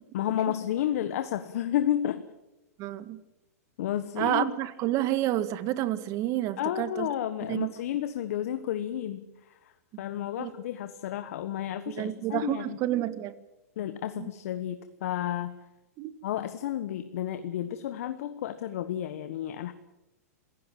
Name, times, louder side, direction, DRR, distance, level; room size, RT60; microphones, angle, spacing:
voice 1, 0.1-2.2 3.8-4.5 6.6-9.7 10.0-12.8 13.8-15.5 16.2-19.7, left 11 dB, 65° left, 10 dB, 1.4 m, -31 dB
voice 2, 2.8-3.2 4.2-7.1 7.5-7.7 10.4-10.5 11.9-13.4 14.2-14.3 16.0-16.1, right 14 dB, 40° right, 13 dB, 1.7 m, -29 dB
27.0 x 16.5 x 7.6 m, 0.99 s
hypercardioid pair, 125°, 9 cm